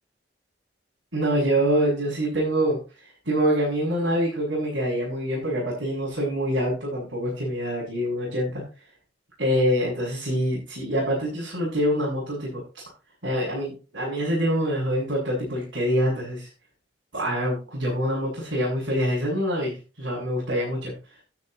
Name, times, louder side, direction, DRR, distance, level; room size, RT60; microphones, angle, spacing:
voice 1, 1.1-8.6 9.4-12.8 13.2-16.5 17.1-20.9, equal, 80° right, -5 dB, 7.0 m, -25 dB
12.0 x 11.5 x 3.0 m, 0.32 s
head